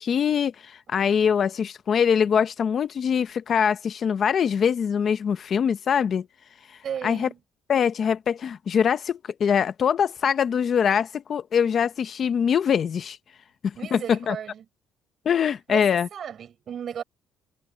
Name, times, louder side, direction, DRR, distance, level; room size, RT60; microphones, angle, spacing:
voice 1, 0.0-6.2 7.0-7.3 7.7-13.2 13.6-14.4 15.2-16.1, left 7 dB, 40° left, 0.7 m, -23 dB
voice 2, 6.8-7.4 13.7-14.6 15.7-17.0, right 8 dB, 40° right, 4.9 m, -35 dB
cardioid pair, 165°, 0 cm